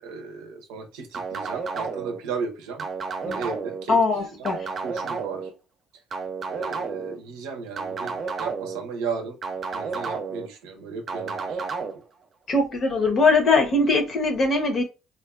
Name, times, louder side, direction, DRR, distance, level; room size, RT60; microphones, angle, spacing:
voice 1, 0.0-2.9 3.2-4.5 4.8-5.5 6.5-9.4 9.7-11.6, right 5 dB, 85° right, 0.6 m, -35 dB
sound 1, 1.1-2.2 2.8-3.8 4.5-5.5 6.1-7.2 7.8-8.8 9.4-10.5 11.1-11.9, right 5 dB, 45° right, 0.6 m, -31 dB
voice 2, 3.9-4.7 12.5-14.8, left 3 dB, 45° left, 0.8 m, -21 dB
2.4 x 2.3 x 2.3 m
supercardioid pair, 85°, 0 cm